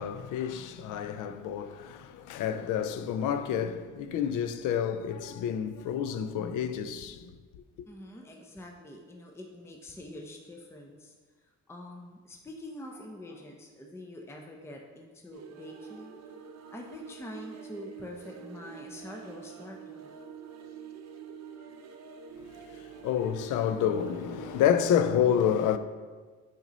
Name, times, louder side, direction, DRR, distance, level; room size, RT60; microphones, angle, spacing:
voice 1, 0.0-7.3 23.0-25.8, left 9 dB, 85° left, 0.5 m, -29 dB
voice 2, 7.9-11.1 11.4-16.2 16.7-20.1, left 1 dB, 10° left, 0.6 m, -45 dB
sound 1, 15.3-25.0, right 7 dB, 60° right, 0.6 m, -46 dB
6.0 x 4.3 x 4.0 m
cardioid pair, 90°, 30 cm